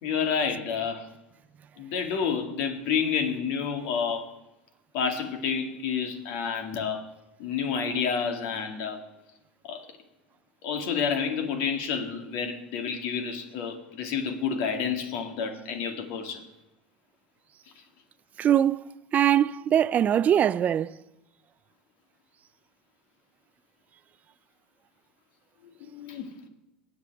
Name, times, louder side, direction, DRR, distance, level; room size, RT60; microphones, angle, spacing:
voice 1, 0.0-1.1 1.8-4.3 4.9-7.0 7.4-9.0 9.6-9.9 10.6-16.4 25.6-26.3, left 6 dB, 65° left, 2.1 m, -29 dB
voice 2, 18.4-18.8 19.1-21.0, right 10 dB, 35° right, 0.4 m, -22 dB
23.5 x 8.5 x 3.5 m
hypercardioid pair, 95°, 4 cm